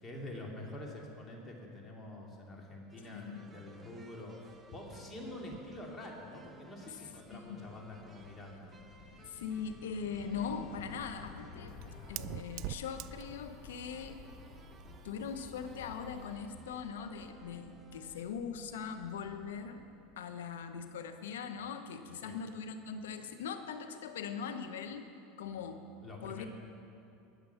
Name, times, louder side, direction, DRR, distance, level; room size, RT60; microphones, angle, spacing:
voice 1, 0.0-8.8 22.2-22.4 26.0-26.5, left 1 dB, 25° left, -1 dB, 2.6 m, -46 dB
sound 1, 2.9-18.2, right 4 dB, 20° right, 1.0 m, -60 dB
voice 2, 3.1-3.5 7.3-7.7 9.3-11.7 12.1-14.2 15.0-19.8 20.2-25.1 25.4-25.8 26.2-26.5, left 6 dB, 90° left, 8 dB, 0.9 m, -41 dB
sound 2, 5.4-20.2, left 5 dB, 55° left, 1.4 m, -54 dB
Fire, 10.3-16.4, right 15 dB, 60° right, 0.3 m, -48 dB
19.5 x 6.9 x 5.6 m, 2.7 s
supercardioid pair, 110°, 0 cm